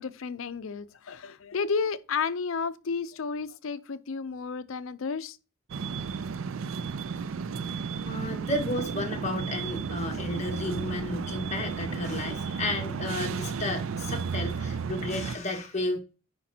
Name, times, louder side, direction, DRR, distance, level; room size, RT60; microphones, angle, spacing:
voice 1, 0.0-5.4, left 5 dB, 80° left, 0.5 m, -32 dB
sound 1, 5.7-15.4, right 5 dB, 80° right, 0.4 m, -33 dB
voice 2, 8.0-16.0, left 2 dB, 35° left, 1.5 m, -32 dB
10.0 x 5.2 x 2.8 m
head